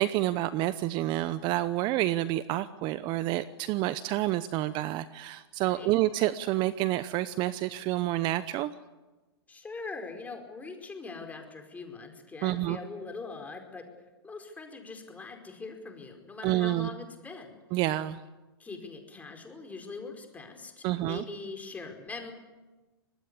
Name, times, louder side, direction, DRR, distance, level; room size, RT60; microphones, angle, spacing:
voice 1, 0.0-8.7 12.4-12.8 16.4-16.9 17.7-18.2 20.8-21.2, right 15 dB, 35° right, 15 dB, 0.8 m, -28 dB
voice 2, 5.6-6.0 9.5-13.9 14.2-17.6 18.6-22.3, left 4 dB, 10° left, 4 dB, 4.9 m, -42 dB
25.0 x 21.0 x 8.5 m, 1.2 s
hypercardioid pair, 120°, 14 cm